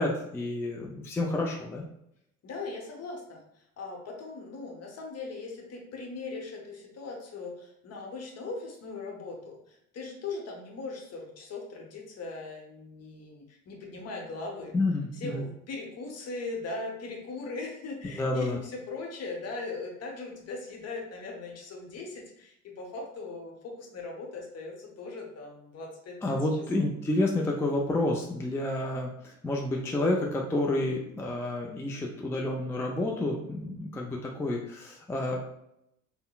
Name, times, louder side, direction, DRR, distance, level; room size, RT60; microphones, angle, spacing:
voice 1, 0.0-1.8 14.7-15.4 18.2-18.6 26.2-35.4, left 2 dB, 5° left, -1 dB, 0.4 m, -29 dB
voice 2, 2.4-14.7 15.2-26.4 26.8-26.9, left 3 dB, 45° left, 0 dB, 0.9 m, -39 dB
3.6 x 2.1 x 2.3 m, 0.78 s
hypercardioid pair, 65°, 37 cm